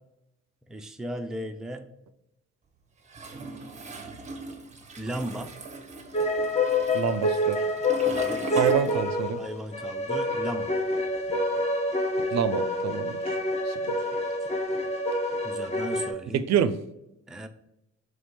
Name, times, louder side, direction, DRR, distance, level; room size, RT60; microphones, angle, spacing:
voice 1, 0.7-1.9 5.0-5.5 8.1-8.7 9.4-10.7 15.4-16.5 17.3-17.5, right 1 dB, ahead, 5 dB, 0.4 m, -36 dB
Toilet flush, 3.1-9.5 9.8-11.4, right 3 dB, 25° right, 0.8 m, -39 dB
sound 1, 6.1-16.1, left 1 dB, 20° left, 0.9 m, -27 dB
voice 2, 6.9-7.6 8.5-9.4 12.3-13.4 13.7-13.9 16.3-16.7, right 9 dB, 60° right, 12 dB, 0.4 m, -27 dB
3.5 x 3.4 x 4.2 m, 0.87 s
cardioid pair, 90°, 30 cm